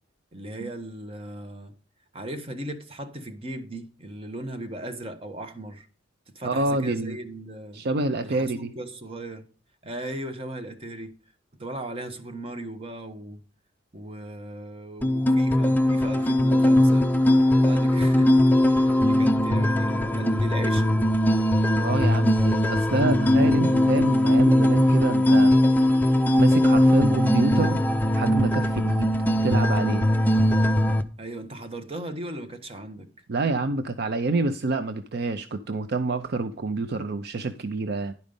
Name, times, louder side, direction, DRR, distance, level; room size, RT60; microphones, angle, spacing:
voice 1, 0.3-1.7 2.1-5.9 6.3-7.8 8.2-9.4 9.8-11.1 11.6-13.4 13.9-17.1 17.6-21.1 31.2-33.1, right 1 dB, 30° right, 1.0 m, -37 dB
voice 2, 6.4-7.2 7.7-8.7 21.8-25.5 26.4-27.8 28.1-30.1 33.3-38.1, right 2 dB, 55° right, 0.5 m, -27 dB
sound 1, 15.0-31.0, left 1 dB, 10° left, 0.5 m, -20 dB
10.5 x 5.1 x 5.2 m
head